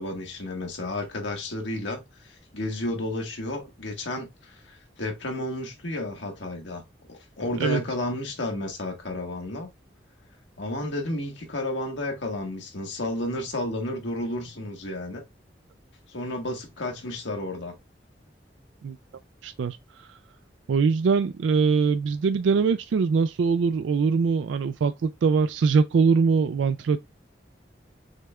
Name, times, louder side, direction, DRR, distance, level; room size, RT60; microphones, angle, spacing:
voice 1, 0.0-6.8 7.1-9.7 10.6-15.2 16.1-17.7, left 1 dB, 85° left, 1.4 m, -32 dB
voice 2, 19.4-19.8 20.1-20.2 20.7-27.0, right 5 dB, 85° right, 0.3 m, -22 dB
6.4 x 2.3 x 3.2 m
head